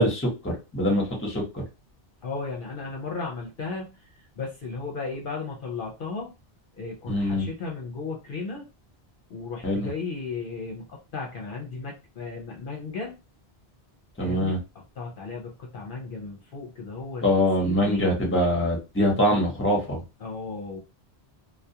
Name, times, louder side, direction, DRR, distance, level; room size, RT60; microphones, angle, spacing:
voice 1, 0.0-1.6 7.1-7.5 9.6-9.9 14.2-14.6 17.2-20.0, equal, 15° left, -1 dB, 0.8 m, -23 dB
voice 2, 2.2-6.3 6.8-8.6 9.3-13.2 14.2-14.6 15.0-18.1 20.2-20.8, left 4 dB, 60° left, -1 dB, 0.7 m, -35 dB
2.3 x 2.2 x 2.7 m, 0.28 s
omnidirectional pair, 1.1 m